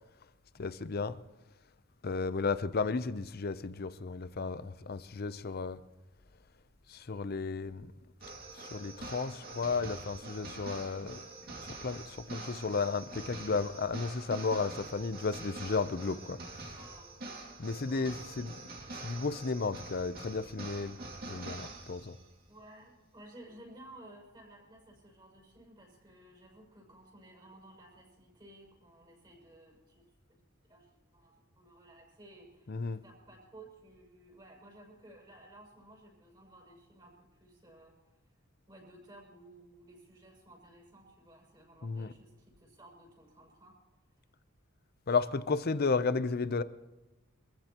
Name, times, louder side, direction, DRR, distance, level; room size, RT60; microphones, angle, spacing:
voice 1, 0.6-1.2 2.0-5.8 6.9-7.9 8.6-11.3 11.8-16.4 17.6-18.5 19.0-21.0 21.2-22.2 32.7-33.0 41.8-42.1 45.1-46.6, left 4 dB, 45° left, 0.6 m, -33 dB
sound 1, 8.2-22.3, right 2 dB, 45° right, 2.3 m, -45 dB
voice 2, 16.7-17.1 17.8-18.5 22.5-30.4 30.7-32.7 33.0-37.9 38.7-43.8, right 1 dB, 20° right, 6.6 m, -56 dB
25.5 x 15.0 x 3.0 m
head